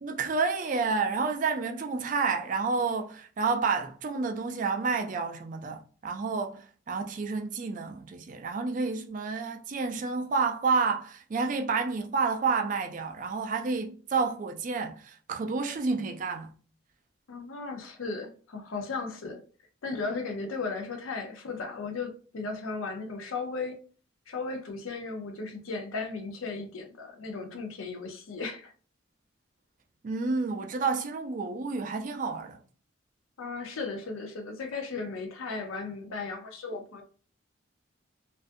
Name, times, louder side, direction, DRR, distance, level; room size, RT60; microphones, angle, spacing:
voice 1, 0.0-16.5 30.0-32.6, right 4 dB, 40° right, 0.3 m, -30 dB
voice 2, 17.3-19.4 19.8-23.8 24.3-28.7 33.4-37.0, left 4 dB, 85° left, 0.6 m, -36 dB
2.5 x 2.2 x 2.5 m
head